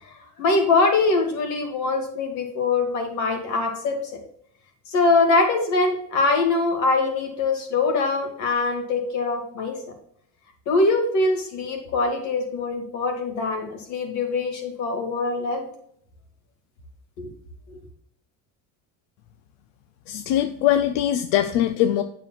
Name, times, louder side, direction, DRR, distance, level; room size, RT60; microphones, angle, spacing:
voice 1, 0.0-4.2 4.9-9.8 10.7-15.7 17.2-17.3 17.7-17.8, left 3 dB, 60° left, 3 dB, 2.2 m, -23 dB
voice 2, 20.1-22.0, left 11 dB, 90° left, 8 dB, 0.6 m, -21 dB
8.3 x 6.9 x 2.4 m, 0.67 s
cardioid pair, 125°, 32 cm